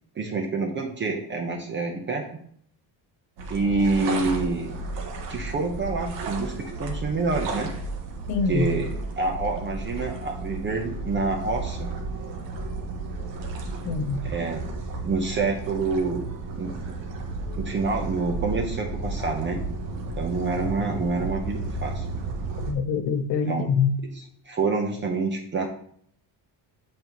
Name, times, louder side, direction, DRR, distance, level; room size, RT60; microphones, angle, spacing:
voice 1, 0.2-2.2 3.5-4.8 5.3-7.7 8.5-11.9 14.2-14.7 15.0-16.3 16.6-16.9 17.5-19.6 20.2-22.0 23.4-23.7 24.1-25.7, right 3 dB, 25° right, 2 dB, 0.7 m, -27 dB
sound 1, 3.4-22.7, right 3 dB, 80° right, 1.5 m, -33 dB
voice 2, 8.3-8.7 13.9-14.2 22.7-23.9, left 6 dB, 85° left, 9 dB, 0.9 m, -24 dB
8.5 x 5.3 x 2.9 m, 0.62 s
cardioid pair, 180°, 43 cm